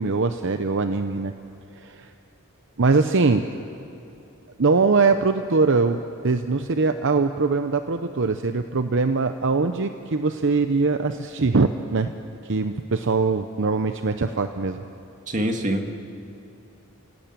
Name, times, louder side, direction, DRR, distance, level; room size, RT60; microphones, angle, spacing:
voice 1, 0.0-1.3 1.7-2.1 2.8-3.5 4.6-6.0 6.2-12.1 12.5-14.8, right 4 dB, 60° right, 8 dB, 0.8 m, -22 dB
voice 2, 15.3-15.9, right 1 dB, 35° right, 4 dB, 2.0 m, -24 dB
29.5 x 17.5 x 8.9 m, 2.7 s
head